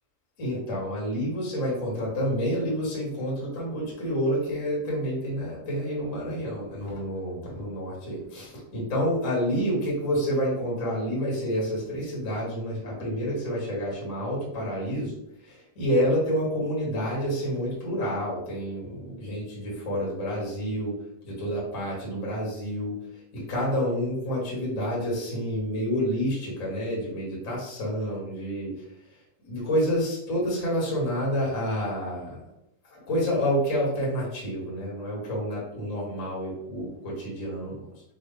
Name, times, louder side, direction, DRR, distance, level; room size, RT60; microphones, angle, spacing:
voice 1, 0.4-21.0 21.2-23.0 23.3-28.7 29.4-32.4 32.9-37.9, equal, 35° left, -5 dB, 1.4 m, -29 dB
6.2 x 2.4 x 3.4 m, 0.80 s
omnidirectional pair, 4.1 m